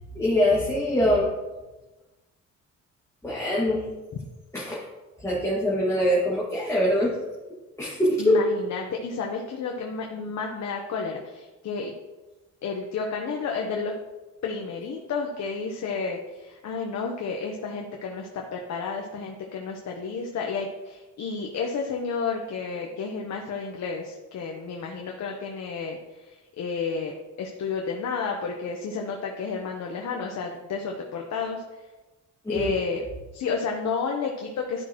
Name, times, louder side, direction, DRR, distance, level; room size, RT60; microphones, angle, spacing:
voice 1, 0.1-1.3 3.2-3.9 4.5-4.9 5.2-7.2 7.8-8.4 32.5-32.7, left 1 dB, 10° left, -6 dB, 2.0 m, -23 dB
voice 2, 8.2-12.0 12.6-13.9 14.4-31.6 32.5-33.0 33.3-34.8, left 5 dB, 65° left, 1 dB, 1.1 m, -31 dB
12.0 x 6.0 x 3.1 m, 1.1 s
cardioid pair, 90°, 30 cm